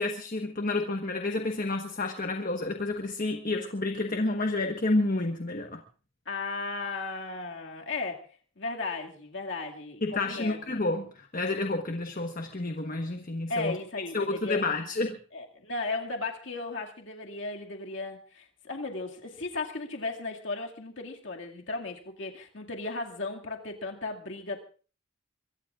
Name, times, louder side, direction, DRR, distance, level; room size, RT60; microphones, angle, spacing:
voice 1, 0.0-5.8 10.0-13.8 14.1-15.2, left 2 dB, 40° left, 4 dB, 1.3 m, -30 dB
voice 2, 6.3-8.3 8.6-10.8 13.5-14.7 15.3-24.6, left 3 dB, 60° left, 1 dB, 2.2 m, -35 dB
24.0 x 23.0 x 2.5 m, 0.39 s
head